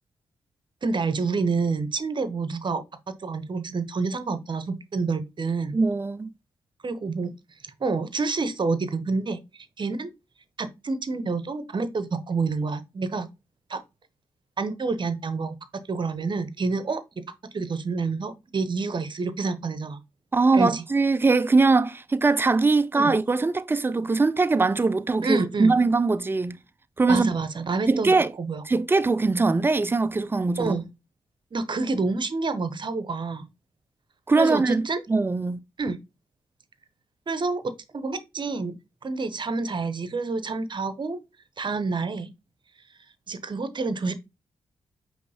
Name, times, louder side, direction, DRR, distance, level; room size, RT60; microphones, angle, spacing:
voice 1, 0.8-2.8 3.2-5.8 6.8-7.3 7.8-9.4 9.8-10.1 10.6-13.3 13.7-13.8 14.6-17.0 17.5-20.0 20.5-20.8 22.9-23.1 25.2-25.7 27.1-28.6 30.6-30.8 31.5-33.5 34.4-35.0 35.8-36.0 37.3-38.8 39.0-41.2 41.6-42.3 43.3-44.1, right 4 dB, 45° right, 0.8 m, -28 dB
voice 2, 5.7-6.3 20.3-26.6 27.0-27.3 27.9-28.3 28.7-30.8 34.3-34.8 35.1-35.6, right 3 dB, 20° right, 0.4 m, -21 dB
5.3 x 3.1 x 2.8 m
supercardioid pair, 45°, 11 cm